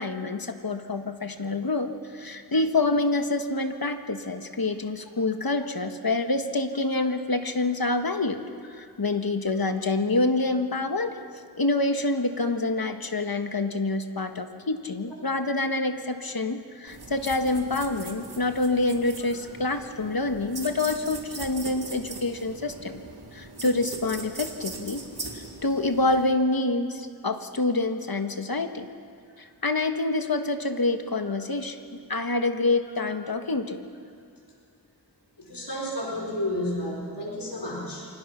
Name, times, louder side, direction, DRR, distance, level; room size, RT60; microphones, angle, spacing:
voice 1, 0.0-8.4 8.8-11.1 11.6-23.0 23.3-25.0 25.3-28.9 29.4-31.8 32.1-33.9, left 2 dB, 65° left, 6 dB, 1.6 m, -27 dB
sound 1, 16.9-26.3, right 3 dB, 70° right, 2.7 m, -40 dB
voice 2, 35.4-38.1, left 1 dB, 85° left, -1 dB, 5.0 m, -31 dB
28.5 x 25.0 x 5.9 m, 2.4 s
wide cardioid pair, 50°, 39 cm